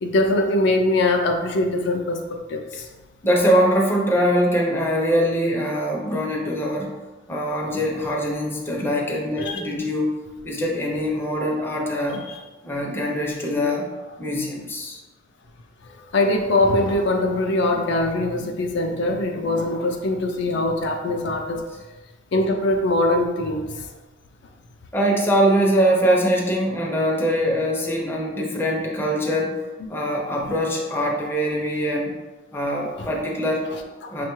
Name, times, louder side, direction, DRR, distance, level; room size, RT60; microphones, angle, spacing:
voice 1, 0.0-2.9 9.4-9.7 12.3-12.4 15.8-21.6 22.3-23.9 33.0-33.1 33.7-34.1, left 2 dB, 60° left, 3 dB, 0.4 m, -22 dB
voice 2, 3.2-6.9 7.3-10.1 10.4-12.2 12.6-13.9 14.2-15.0 24.9-29.5 29.9-32.1 32.5-33.7 34.1-34.2, equal, 10° left, -2 dB, 0.5 m, -22 dB
5.4 x 2.2 x 3.0 m, 1.2 s
head